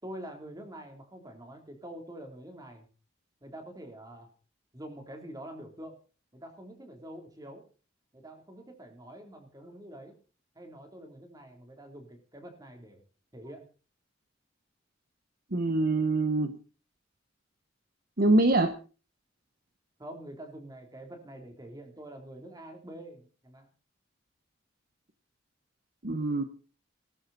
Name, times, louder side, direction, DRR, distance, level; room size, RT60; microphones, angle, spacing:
voice 1, 0.0-2.9 3.4-4.3 4.7-6.0 6.3-7.6 8.1-10.1 10.5-13.0 13.3-13.7 20.0-23.7, right 1 dB, 20° right, 4 dB, 3.3 m, -46 dB
voice 2, 15.5-16.6 18.2-18.8 26.0-26.4, right 2 dB, 50° right, 9 dB, 1.1 m, -24 dB
18.5 x 12.0 x 4.1 m, 0.37 s
head